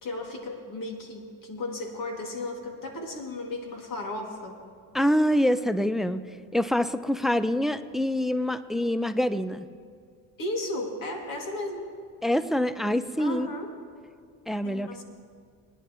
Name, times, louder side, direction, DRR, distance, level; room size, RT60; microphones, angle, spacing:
voice 1, 0.0-4.6 10.4-11.9 13.2-13.7 14.6-15.0, left 1 dB, 55° left, 1 dB, 2.5 m, -34 dB
voice 2, 4.9-6.2 6.5-9.6 12.2-13.5 14.5-15.0, equal, ahead, 13 dB, 0.4 m, -25 dB
21.5 x 10.5 x 3.1 m, 2.1 s
supercardioid pair, 80°, 40 cm